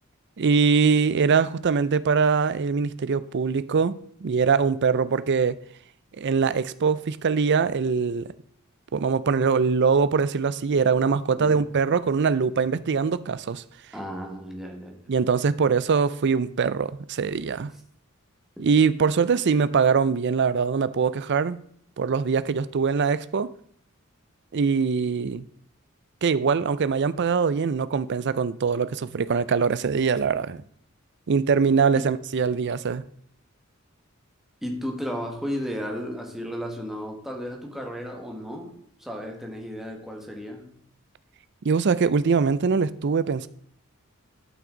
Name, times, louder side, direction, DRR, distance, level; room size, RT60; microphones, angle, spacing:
voice 1, 0.4-5.6 6.2-8.3 8.9-13.6 15.1-17.7 18.6-21.6 22.0-23.5 24.5-25.4 26.2-30.6 31.3-33.0 41.6-43.5, right 5 dB, 55° right, 0.5 m, -22 dB
voice 2, 13.9-15.1 31.9-32.1 34.6-40.7, equal, ahead, 1.6 m, -34 dB
12.0 x 5.9 x 3.9 m
head